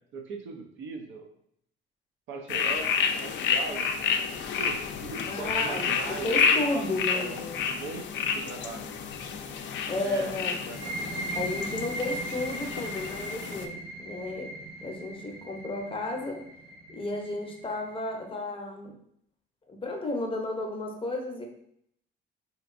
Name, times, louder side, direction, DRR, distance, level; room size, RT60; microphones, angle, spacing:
voice 1, 0.1-1.2 2.3-2.9 3.2-4.3 4.6-8.8 10.0-10.3 10.7-11.3, right 3 dB, 75° right, 4 dB, 0.5 m, -39 dB
sound 1, 2.5-13.7, left 6 dB, 65° left, 0.4 m, -30 dB
voice 2, 5.3-5.9 6.2-7.7 9.9-10.6 11.3-14.5 14.8-16.4 16.9-19.0 19.7-21.5, left 2 dB, 25° left, 2 dB, 0.6 m, -33 dB
sound 2, 10.6-18.1, right 1 dB, 50° right, 1.2 m, -38 dB
3.3 x 2.9 x 2.5 m, 0.71 s
cardioid pair, 90°, 20 cm